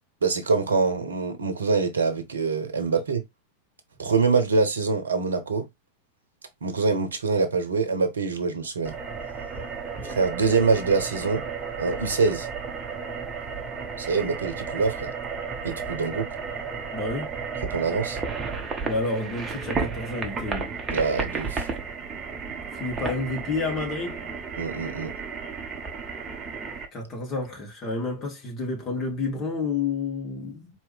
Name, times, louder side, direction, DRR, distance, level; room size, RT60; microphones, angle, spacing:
voice 1, 0.2-3.2 4.0-5.7 6.6-9.0 10.0-11.4 11.8-12.5 14.0-15.1 15.6-16.3 17.6-18.2 20.9-21.7 24.6-25.1, right 4 dB, 70° right, 0.9 m, -24 dB
sound 1, 8.8-26.9, right 5 dB, 20° right, 1.0 m, -33 dB
voice 2, 16.9-17.3 18.8-20.8 22.7-24.3 26.9-30.7, left 3 dB, 30° left, 2.0 m, -30 dB
4.5 x 3.0 x 3.4 m
figure-of-eight pair, 90°, 0 cm